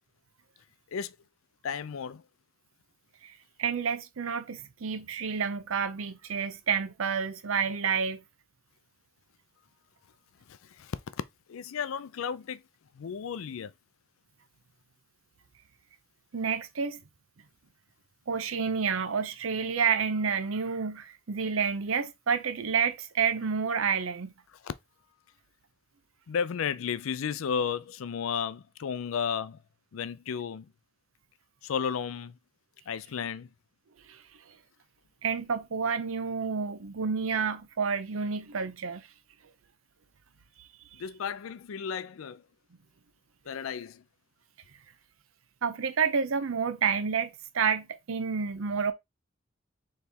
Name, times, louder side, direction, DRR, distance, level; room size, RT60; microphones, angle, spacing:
voice 1, 1.6-2.2 10.5-11.0 11.5-12.6 12.9-13.7 24.6-24.7 26.3-29.6 29.9-30.7 31.6-32.4 32.9-33.5 41.0-42.4 43.5-44.0, left 7 dB, 85° left, 0.4 m, -33 dB
voice 2, 3.6-8.2 16.3-17.0 18.3-24.3 34.1-34.2 35.2-39.0 45.6-48.9, right 6 dB, 85° right, 0.6 m, -29 dB
4.3 x 3.2 x 3.4 m
head